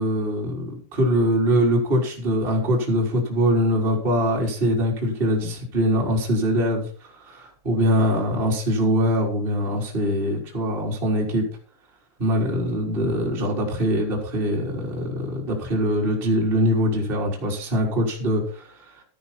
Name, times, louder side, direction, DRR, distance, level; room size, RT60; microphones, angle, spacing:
voice 1, 0.0-11.4 12.2-19.0, equal, 15° right, -1 dB, 3.1 m, -23 dB
13.5 x 10.0 x 4.3 m, 0.43 s
omnidirectional pair, 6.0 m